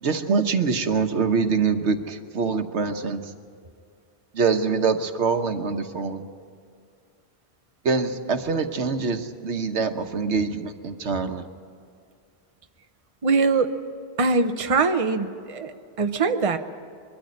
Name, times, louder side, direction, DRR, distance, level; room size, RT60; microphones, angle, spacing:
voice 1, 0.0-3.3 4.3-6.3 7.8-11.5, right 5 dB, 90° right, 7 dB, 1.4 m, -24 dB
voice 2, 13.2-13.7 14.2-16.6, right 4 dB, 35° right, 7 dB, 0.9 m, -22 dB
22.5 x 13.5 x 9.7 m, 2.3 s
omnidirectional pair, 1.1 m